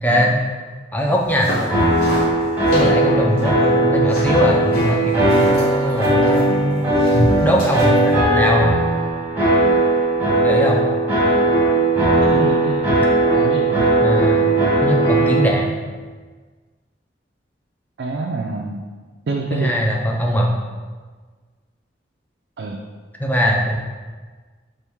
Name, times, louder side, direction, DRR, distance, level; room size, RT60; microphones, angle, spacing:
voice 1, 0.0-0.3 0.9-1.5 2.7-6.9 7.4-8.8 10.4-10.8 14.0-14.5 14.8-15.7 19.5-20.5 23.2-23.7, equal, 10° left, -1 dB, 0.4 m, -20 dB
sound 1, 1.1-8.1, equal, 50° left, 1.4 m, -29 dB
sound 2, 1.7-15.4, right 1 dB, 10° right, 1.0 m, -18 dB
voice 2, 12.1-13.0 13.3-14.0 18.0-18.8 19.3-19.8 22.6-22.8, right 3 dB, 60° right, 0 dB, 0.4 m, -27 dB
3.5 x 3.0 x 4.5 m, 1.4 s
head